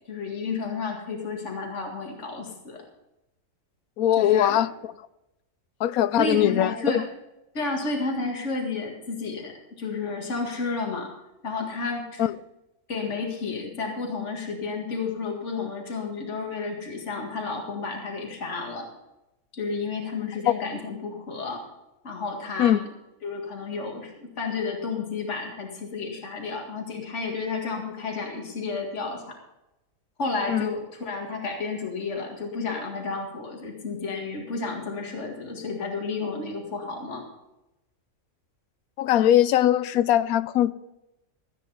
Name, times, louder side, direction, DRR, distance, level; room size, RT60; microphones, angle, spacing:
voice 1, 0.1-2.8 4.2-4.6 6.2-7.0 7.5-11.1 11.4-12.3 12.9-18.9 19.5-21.6 22.0-22.7 23.2-29.4 30.2-37.3, left 4 dB, 55° left, 2.3 m, -31 dB
voice 2, 4.0-4.7 5.8-7.0 12.2-12.3 22.6-22.8 30.5-30.7 39.0-40.7, left 11 dB, 90° left, 1.0 m, -21 dB
14.5 x 9.3 x 5.5 m
omnidirectional pair, 1.5 m